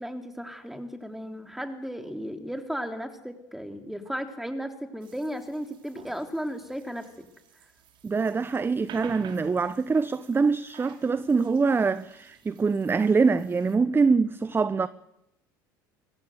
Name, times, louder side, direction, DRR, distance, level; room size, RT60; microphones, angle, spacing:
voice 1, 0.0-7.1, equal, ahead, 3.9 m, -35 dB
sound 1, 5.0-13.7, right 8 dB, 50° right, 4.6 m, -51 dB
voice 2, 8.0-14.9, right 4 dB, 20° right, 0.9 m, -24 dB
24.5 x 16.0 x 8.2 m
hypercardioid pair, 70°, 10 cm